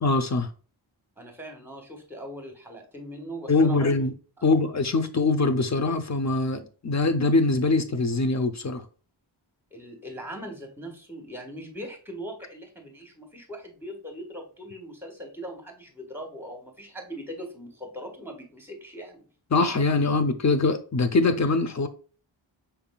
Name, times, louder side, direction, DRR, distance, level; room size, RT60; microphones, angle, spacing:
voice 1, 0.0-0.5 3.5-4.1 4.4-8.8 19.5-21.9, left 3 dB, 35° left, 0.7 m, -23 dB
voice 2, 1.2-4.1 9.7-19.3, equal, 5° right, 1.5 m, -40 dB
5.8 x 3.5 x 2.3 m
wide cardioid pair, 85°, 48 cm